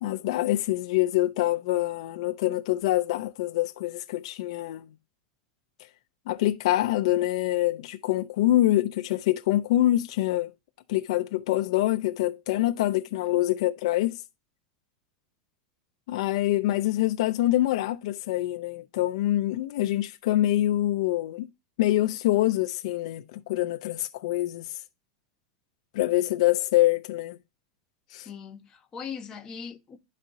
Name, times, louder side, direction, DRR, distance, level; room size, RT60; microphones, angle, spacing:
voice 1, 0.0-4.9 6.3-10.5 10.9-14.2 16.1-21.5 21.8-24.7 25.9-27.4 28.1-28.3, left 15 dB, 70° left, 0.6 m, -25 dB
voice 2, 28.1-30.0, left 6 dB, 20° left, 1.1 m, -40 dB
12.0 x 4.3 x 2.7 m
supercardioid pair, 145°, 3 cm